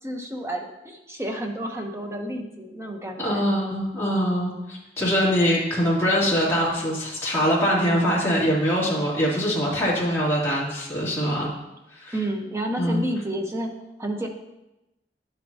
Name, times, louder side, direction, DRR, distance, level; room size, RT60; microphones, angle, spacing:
voice 1, 0.0-3.5 12.1-13.7 14.0-14.3, right 1 dB, 15° right, 2 dB, 0.9 m, -30 dB
voice 2, 3.2-11.5 11.9-12.1 12.8-13.0, equal, 15° left, -7 dB, 2.7 m, -23 dB
10.5 x 7.8 x 2.8 m, 0.95 s
head